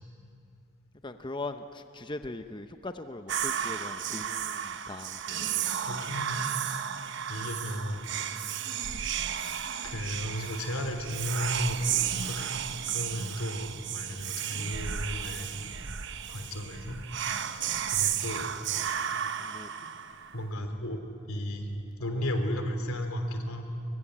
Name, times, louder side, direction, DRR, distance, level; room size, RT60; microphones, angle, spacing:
voice 1, 1.0-5.6 19.4-19.7, left 2 dB, 20° left, 8 dB, 0.7 m, -40 dB
Whispering, 3.3-20.4, right 9 dB, 60° right, 1.0 m, -33 dB
voice 2, 5.8-6.5 7.3-8.1 9.8-15.5 16.3-17.0 17.5-18.4 20.3-21.0 21.3-21.7 22.0-23.6, equal, 90° left, 6 dB, 3.3 m, -34 dB
24.0 x 23.5 x 10.0 m, 2.5 s
head